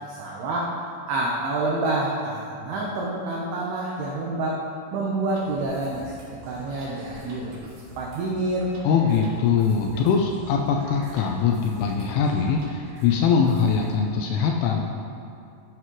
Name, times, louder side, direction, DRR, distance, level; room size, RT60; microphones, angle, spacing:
voice 1, 0.0-4.6 4.9-6.1 6.5-7.5 8.0-8.7, right 2 dB, 90° right, -3 dB, 2.2 m, -28 dB
sound 1, 5.3-13.9, right 1 dB, 55° right, 2.3 m, -45 dB
voice 2, 8.8-14.8, left 6 dB, 85° left, 2 dB, 2.8 m, -22 dB
16.0 x 8.0 x 3.1 m, 2.5 s
omnidirectional pair, 6.0 m